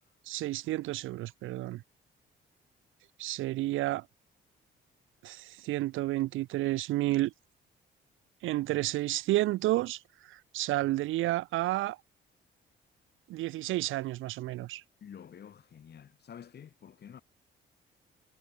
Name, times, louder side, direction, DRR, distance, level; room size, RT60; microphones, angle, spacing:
voice 1, 0.3-1.8 3.2-4.1 5.2-7.3 8.4-10.0 10.3-12.0 13.3-14.8, right 16 dB, 85° right, 0.7 m, -31 dB
voice 2, 15.0-17.2, left 8 dB, 55° left, 6.1 m, -49 dB
cardioid pair, 90°, 20 cm